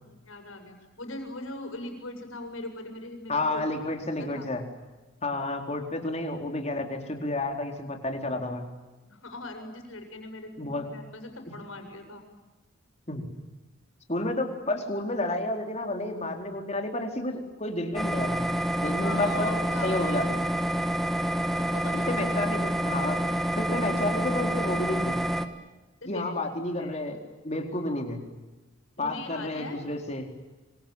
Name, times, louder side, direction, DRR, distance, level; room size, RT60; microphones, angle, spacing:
voice 1, 0.0-3.6 4.2-4.5 9.1-12.2 19.0-20.0 21.6-22.4 26.0-26.3 26.8-26.9 29.0-29.8, left 2 dB, 90° left, 5 dB, 7.2 m, -40 dB
voice 2, 3.3-4.6 5.2-8.6 10.6-10.9 11.5-11.6 13.1-13.3 14.1-18.4 18.8-19.5 19.8-20.4 22.1-23.2 23.6-25.1 26.0-27.2 27.4-28.2 29.0-30.3, left 2 dB, 35° left, 3 dB, 4.5 m, -31 dB
sound 1, 17.9-25.5, right 1 dB, ahead, 1.6 m, -28 dB
26.0 x 25.5 x 9.0 m, 1.2 s
head